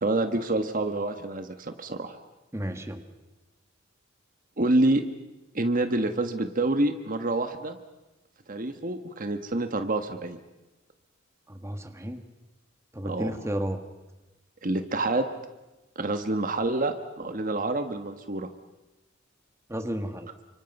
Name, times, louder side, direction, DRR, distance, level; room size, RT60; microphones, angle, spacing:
voice 1, 0.0-2.2 4.6-5.0 5.5-7.8 8.5-10.4 13.0-13.3 14.6-15.3 15.9-18.5, right 2 dB, 45° right, 8 dB, 1.3 m, -27 dB
voice 2, 2.5-3.0 11.5-12.2 12.9-13.8 19.7-20.3, equal, 15° right, 7 dB, 1.6 m, -32 dB
30.0 x 25.5 x 5.4 m, 1.0 s
head